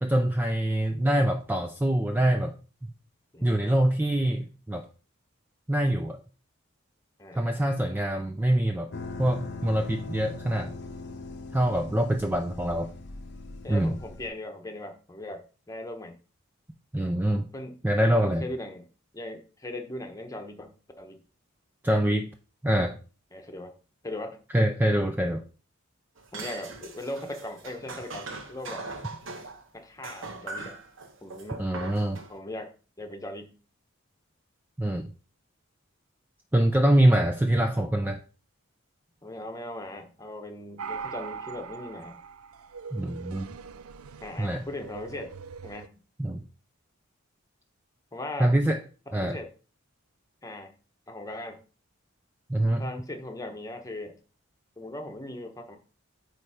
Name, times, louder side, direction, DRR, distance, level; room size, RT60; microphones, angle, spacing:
voice 1, 0.0-2.5 3.4-4.9 5.7-6.2 7.3-8.9 9.2-10.7 11.5-12.9 13.7-14.0 16.9-17.4 17.8-18.4 21.8-22.3 22.6-23.0 24.5-25.4 31.6-32.2 34.8-35.1 36.5-38.2 42.9-43.5 44.4-44.6 46.2-46.4 48.4-48.8 49.1-49.4 52.5-52.9, right 1 dB, 10° right, 5 dB, 0.4 m, -24 dB
voice 2, 3.3-3.8 7.2-7.7 13.6-16.1 17.5-17.8 18.2-18.9 19.1-21.2 23.3-23.7 24.0-24.4 26.3-28.8 29.7-30.7 31.2-31.6 32.3-32.7 33.0-33.5 39.2-42.2 44.2-45.3 45.6-45.9 48.1-48.5 49.1-49.5 50.4-50.7 51.1-51.6 52.8-54.2 54.8-55.8, left 1 dB, 15° left, 5 dB, 1.0 m, -39 dB
sound 1, 8.9-14.3, left 3 dB, 50° left, 0.7 m, -41 dB
sound 2, 26.2-29.6 30.0-32.3, right 3 dB, 60° right, 1.1 m, -40 dB
sound 3, 40.8-45.9, right 5 dB, 85° right, 0.4 m, -41 dB
8.9 x 3.3 x 4.9 m, 0.36 s
head